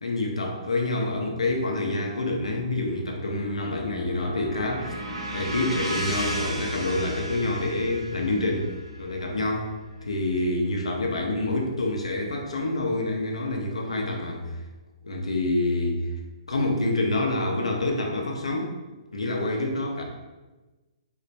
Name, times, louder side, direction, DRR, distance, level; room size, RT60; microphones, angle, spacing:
voice 1, 0.0-5.0 5.3-8.7 9.0-9.7 10.0-14.5 15.0-16.1 16.5-18.7 19.1-20.0, left 2 dB, 75° left, 1 dB, 0.5 m, -27 dB
sound 1, 3.4-11.4, right 1 dB, 90° right, 0.5 m, -35 dB
3.2 x 2.1 x 2.6 m, 1.2 s
figure-of-eight pair, 125°, 3 cm